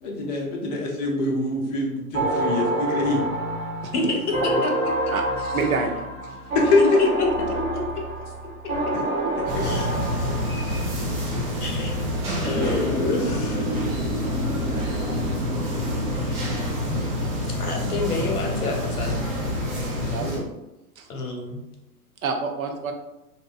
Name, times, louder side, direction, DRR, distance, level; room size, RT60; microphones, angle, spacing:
voice 1, 0.0-3.2 6.5-6.8 15.0-15.3, left 2 dB, 30° left, 0 dB, 0.4 m, -24 dB
sound 1, 2.1-10.9, right 1 dB, 45° right, 0.9 m, -27 dB
voice 2, 5.5-6.0 20.0-20.4 21.0-21.1 22.2-22.9, right 4 dB, 70° right, 4 dB, 0.6 m, -27 dB
voice 3, 9.3-9.9 11.6-11.9 12.4-13.7 17.6-19.1 21.1-21.6, left 2 dB, 80° left, 1 dB, 0.7 m, -28 dB
sound 2, 9.5-20.4, left 1 dB, 20° right, 0.5 m, -27 dB
sound 3, 12.4-17.4, right 1 dB, 5° right, 1.1 m, -32 dB
2.7 x 2.2 x 2.2 m, 0.95 s
figure-of-eight pair, 100°, 44 cm